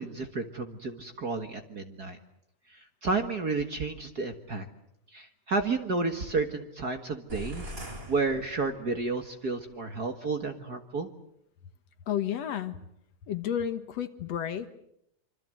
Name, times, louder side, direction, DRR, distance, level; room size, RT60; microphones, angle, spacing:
voice 1, 0.0-2.2 2.7-4.7 5.1-7.7 8.1-11.1, right 3 dB, 40° right, 6 dB, 1.7 m, -31 dB
sound 1, 7.3-9.1, equal, 20° right, 2.6 m, -41 dB
voice 2, 12.1-12.8 13.2-14.7, left 9 dB, 65° left, 10 dB, 2.3 m, -31 dB
26.0 x 26.0 x 7.8 m, 0.77 s
omnidirectional pair, 3.3 m